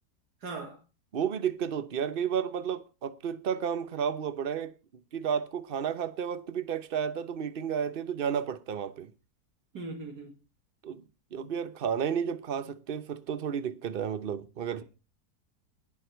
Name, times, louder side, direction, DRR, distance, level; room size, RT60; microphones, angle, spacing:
voice 1, 0.4-0.8 9.7-10.3, right 3 dB, 75° right, 2.2 m, -39 dB
voice 2, 1.1-4.7 5.1-9.1 10.8-11.0 11.3-14.8, right 8 dB, 40° right, 0.9 m, -32 dB
19.5 x 6.7 x 4.5 m
omnidirectional pair, 1.7 m